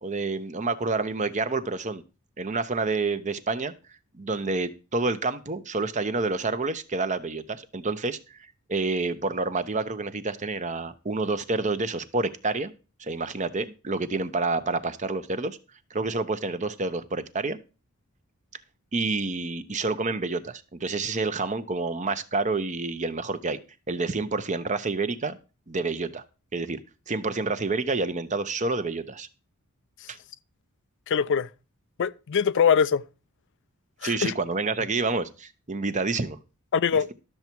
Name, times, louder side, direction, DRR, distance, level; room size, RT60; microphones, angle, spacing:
voice 1, 0.0-2.0 2.4-3.7 4.2-8.4 8.7-12.7 13.0-15.6 15.9-17.6 18.9-23.6 23.9-25.4 25.7-26.2 26.5-26.8 27.1-29.3 30.1-30.2 34.0-36.4, right 3 dB, 35° right, 0.8 m, -28 dB
voice 2, 31.1-31.5 32.0-33.0 34.0-34.3 36.7-37.1, left 7 dB, 55° left, 0.4 m, -22 dB
12.0 x 7.0 x 4.5 m
head